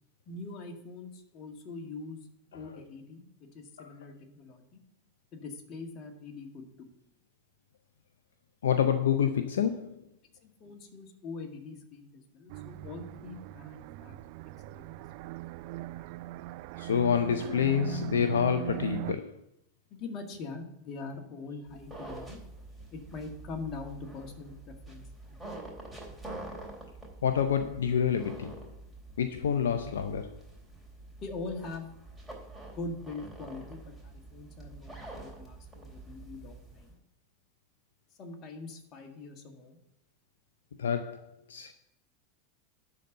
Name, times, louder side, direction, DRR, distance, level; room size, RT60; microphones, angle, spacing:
voice 1, 0.3-2.2 2.5-3.2 3.5-4.8 5.3-6.9 10.4-14.2 14.7-14.9 20.0-22.4 22.9-25.6 31.2-31.9 32.6-36.9 38.2-39.8, left 3 dB, 40° left, 1.8 m, -43 dB
voice 2, 8.6-10.0 16.8-19.3 27.2-28.7 29.2-30.4 40.8-41.7, left 8 dB, 75° left, 0.5 m, -28 dB
sound 1, 12.5-19.1, right 16 dB, 55° right, 0.4 m, -40 dB
sound 2, 21.7-36.9, right 2 dB, 5° right, 3.2 m, -47 dB
11.5 x 4.1 x 7.7 m
figure-of-eight pair, 85°, 0 cm